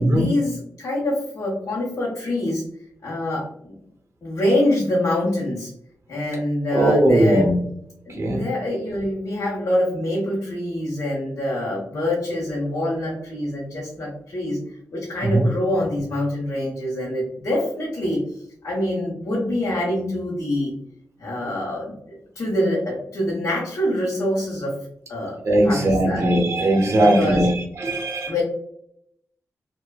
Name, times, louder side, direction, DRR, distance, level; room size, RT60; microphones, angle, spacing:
voice 1, 0.0-2.6 3.0-3.7 4.2-5.7 6.1-7.5 8.1-14.6 14.9-18.2 18.6-20.7 21.2-24.8 25.1-25.4 25.6-26.3 27.0-27.5 28.3-28.4, left 1 dB, 70° left, -5 dB, 0.9 m, -25 dB
voice 2, 6.7-7.5 8.2-8.4 15.2-15.5 25.4-27.5 27.8-28.3, right 1 dB, 50° right, 0 dB, 0.7 m, -18 dB
2.8 x 2.3 x 2.3 m, 0.72 s
cardioid pair, 50°, 6 cm